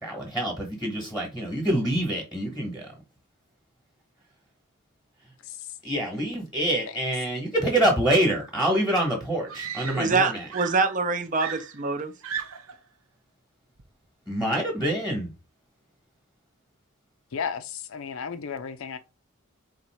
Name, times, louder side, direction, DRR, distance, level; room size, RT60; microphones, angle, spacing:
voice 1, 0.0-2.9 5.8-10.5 14.3-15.3, right 1 dB, 5° right, 1.2 m, -26 dB
Screaming, 9.5-10.2 10.5-12.8 13.8-14.1, right 8 dB, 75° right, 0.7 m, -36 dB
voice 2, 9.9-12.1, right 4 dB, 40° right, 0.6 m, -25 dB
voice 3, 17.3-19.0, left 6 dB, 70° left, 0.5 m, -33 dB
4.2 x 2.5 x 4.3 m
head